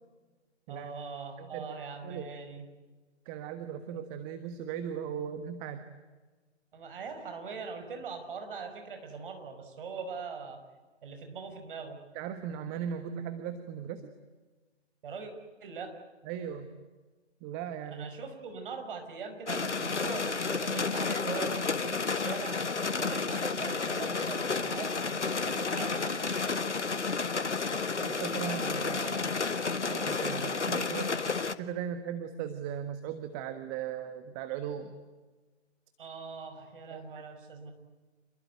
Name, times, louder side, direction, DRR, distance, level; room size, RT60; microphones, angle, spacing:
voice 1, 0.7-2.7 6.7-10.6 11.0-12.0 15.0-15.3 15.6-15.9 17.9-22.6 22.9-25.2 25.4-26.4 36.0-37.7, right 5 dB, 50° right, 6 dB, 5.6 m, -41 dB
voice 2, 1.4-1.7 2.0-2.3 3.2-5.9 12.1-14.1 16.2-16.7 17.4-18.1 28.0-29.3 29.7-31.2 31.6-34.9 36.9-37.2, right 8 dB, 20° right, 9 dB, 1.4 m, -38 dB
sound 1, 19.5-31.5, left 4 dB, 80° left, 1.7 m, -31 dB
28.0 x 21.5 x 9.2 m, 1.3 s
figure-of-eight pair, 135°, 35 cm